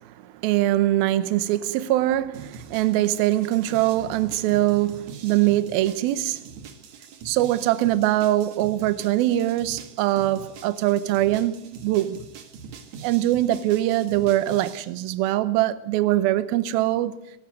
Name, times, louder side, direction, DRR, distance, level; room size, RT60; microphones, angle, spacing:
voice 1, 0.4-6.4 7.3-12.2 13.0-17.2, right 14 dB, 80° right, 2.2 m, -22 dB
sound 1, 2.3-14.8, right 6 dB, 50° right, 2.5 m, -43 dB
19.5 x 15.0 x 9.6 m
omnidirectional pair, 5.4 m